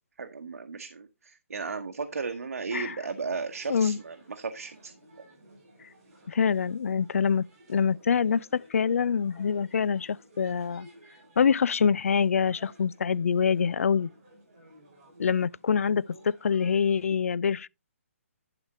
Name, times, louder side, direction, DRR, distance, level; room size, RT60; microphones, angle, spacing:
voice 1, 0.2-4.9, right 4 dB, 85° right, 1.2 m, -35 dB
sound 1, 3.0-17.1, right 1 dB, 25° right, 5.3 m, -55 dB
voice 2, 6.3-10.9 11.4-14.1 15.2-17.7, left 6 dB, 70° left, 0.4 m, -25 dB
11.5 x 5.0 x 4.2 m
hypercardioid pair, 175°, 8 cm